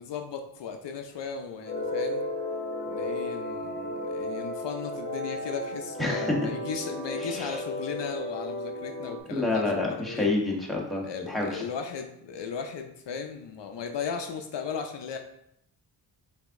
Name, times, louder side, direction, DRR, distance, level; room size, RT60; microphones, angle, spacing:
voice 1, 0.0-2.3 2.8-10.3 11.0-15.2, left 6 dB, 70° left, 4 dB, 0.6 m, -36 dB
sound 1, 1.6-9.2, left 1 dB, 25° left, 1.2 m, -34 dB
voice 2, 6.0-6.4 7.2-7.6 9.3-11.6, left 2 dB, ahead, -3 dB, 1.2 m, -28 dB
5.1 x 2.9 x 3.6 m, 0.76 s
cardioid pair, 60°, 44 cm